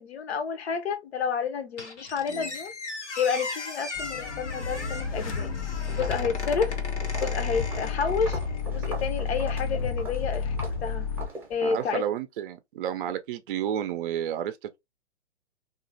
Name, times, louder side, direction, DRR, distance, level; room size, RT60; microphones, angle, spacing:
voice 1, 0.0-2.7 3.2-5.5 6.0-6.8 7.2-8.4 8.7-10.5 10.8-11.1 11.5-12.0, left 6 dB, 65° left, 0.7 m, -30 dB
Squeak, 1.8-8.7, left 3 dB, 90° left, 0.9 m, -38 dB
sound 1, 3.9-11.3, left 5 dB, 35° left, 0.4 m, -31 dB
Walk footsteps, 5.3-5.6 5.9-11.9, right 2 dB, 5° right, 0.7 m, -42 dB
voice 2, 11.6-14.8, right 10 dB, 50° right, 0.5 m, -31 dB
2.9 x 2.4 x 2.5 m
figure-of-eight pair, 120°, 34 cm